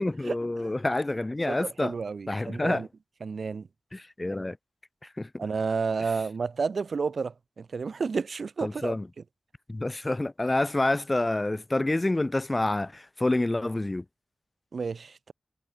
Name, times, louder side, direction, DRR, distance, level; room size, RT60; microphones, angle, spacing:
voice 1, 0.0-1.9 2.3-2.9 3.9-4.6 5.0-5.4 8.6-9.1 9.7-14.0, left 2 dB, 25° left, 5.1 m, -28 dB
voice 2, 1.5-2.9 3.2-3.7 5.4-8.9 14.7-15.3, right 5 dB, 65° right, 3.1 m, -31 dB
wide cardioid pair, 80°, 0 cm